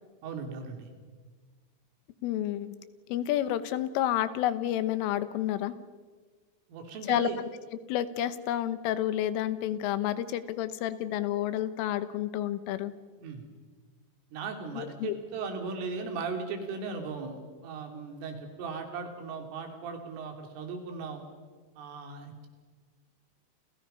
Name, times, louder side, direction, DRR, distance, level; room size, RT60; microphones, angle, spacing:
voice 1, 0.2-0.9 6.7-7.4 13.2-13.5 14.3-21.2 21.8-22.5, right 4 dB, 85° right, 4 dB, 5.5 m, -37 dB
voice 2, 2.2-2.8 3.1-5.8 7.1-7.3 7.9-12.9 14.8-15.1, left 12 dB, 90° left, 13 dB, 3.7 m, -30 dB
29.5 x 29.0 x 5.6 m, 1.5 s
omnidirectional pair, 5.6 m